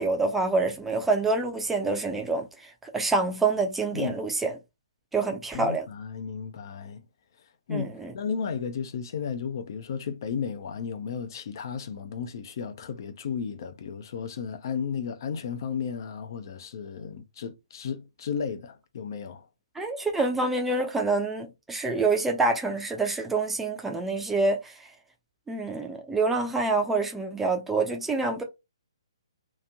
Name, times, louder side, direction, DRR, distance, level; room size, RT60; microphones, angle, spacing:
voice 1, 0.0-2.5 2.8-4.5 5.1-5.9 7.7-8.1 19.8-24.7 25.5-28.4, right 3 dB, 5° right, 0.5 m, -26 dB
voice 2, 5.5-7.0 7.7-19.5, left 6 dB, 45° left, 0.4 m, -34 dB
2.9 x 2.5 x 2.3 m
figure-of-eight pair, 130°, 3 cm